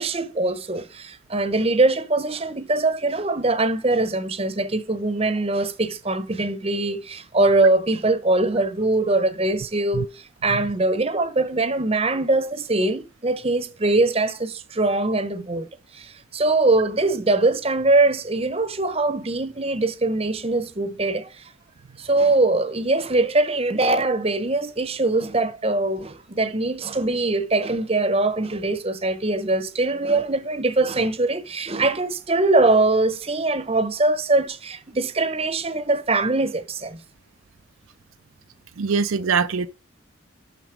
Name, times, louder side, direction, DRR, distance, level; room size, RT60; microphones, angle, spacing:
voice 1, 0.0-15.7 15.9-21.5 22.0-37.0, right 2 dB, 30° right, 0.8 m, -22 dB
voice 2, 38.8-39.7, right 5 dB, 75° right, 0.5 m, -22 dB
12.0 x 4.1 x 5.0 m
head